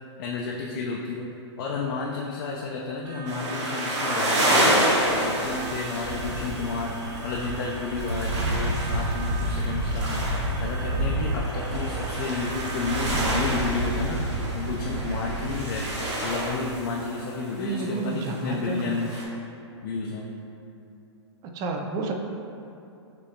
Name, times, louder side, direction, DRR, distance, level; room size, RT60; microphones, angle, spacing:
voice 1, 0.2-1.3 1.6-4.7 5.1-7.0 7.2-14.2 14.5-15.9 16.2-19.2 19.8-20.3, left 4 dB, 50° left, -2 dB, 0.5 m, -31 dB
sound 1, 3.0-13.1, right 4 dB, 55° right, 0.8 m, -41 dB
sound 2, 3.3-19.2, right 1 dB, 80° right, 1.3 m, -27 dB
voice 2, 17.6-19.0 21.5-22.1, right 4 dB, 25° right, 2 dB, 0.4 m, -30 dB
6.9 x 2.7 x 2.8 m, 2.8 s
hypercardioid pair, 135°, 15 cm